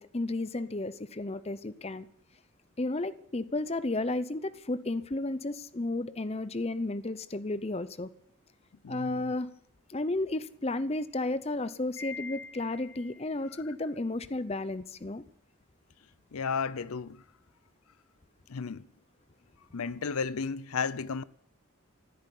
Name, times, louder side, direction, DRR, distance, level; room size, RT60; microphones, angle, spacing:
voice 1, 0.0-2.1 2.8-8.1 8.9-9.5 9.9-15.2, left 2 dB, 30° left, 0.6 m, -33 dB
voice 2, 8.8-9.3 13.5-13.6 16.3-17.2 18.5-18.9 19.7-21.2, left 5 dB, 80° left, 0.6 m, -33 dB
Wind chime, 12.0-13.4, left 4 dB, 65° left, 1.7 m, -44 dB
14.5 x 8.2 x 10.0 m
head